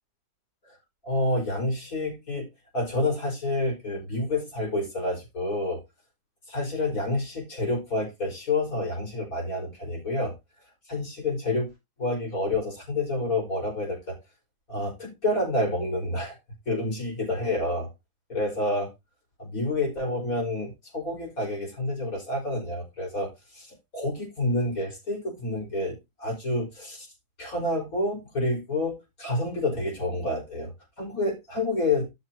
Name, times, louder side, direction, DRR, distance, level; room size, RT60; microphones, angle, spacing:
voice 1, 1.0-2.5 2.7-5.8 6.5-10.3 10.9-11.7 12.0-14.2 14.7-16.3 16.7-17.9 18.3-18.9 19.4-27.1 27.4-28.9 29.2-30.7 31.0-32.1, left 2 dB, 55° left, 5.3 m, -28 dB
13.0 x 6.6 x 2.9 m
omnidirectional pair, 1.7 m